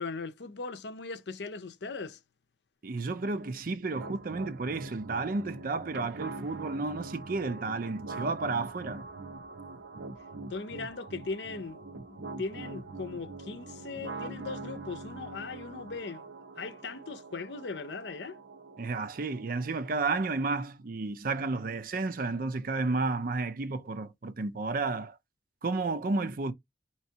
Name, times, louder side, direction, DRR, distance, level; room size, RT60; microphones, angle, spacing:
voice 1, 0.0-2.2 10.5-11.8 12.1-16.2 16.6-18.4, left 4 dB, 70° left, 0.6 m, -39 dB
voice 2, 2.8-9.1 18.8-25.2 25.6-26.5, right 3 dB, 50° right, 0.5 m, -32 dB
sound 1, 3.9-19.9, right 3 dB, 85° right, 0.9 m, -43 dB
4.5 x 3.0 x 2.8 m
head